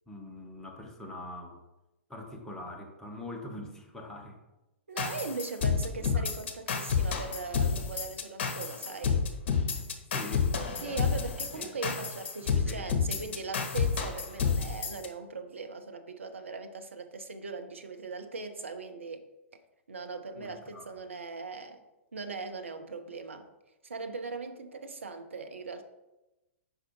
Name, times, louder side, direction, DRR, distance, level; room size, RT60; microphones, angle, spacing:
voice 1, 0.1-1.6 2.1-4.4 5.6-6.2 10.1-10.5 11.5-11.7 12.4-13.4 20.4-20.9, left 1 dB, 5° left, 1.1 m, -44 dB
voice 2, 4.9-9.3 10.8-19.2 19.5-19.6 19.9-21.8 22.1-23.5 23.8-25.8, right 4 dB, 75° right, 0.7 m, -40 dB
sound 1, 5.0-15.1, left 6 dB, 55° left, 0.9 m, -30 dB
4.9 x 4.4 x 4.7 m
figure-of-eight pair, 110°, 7 cm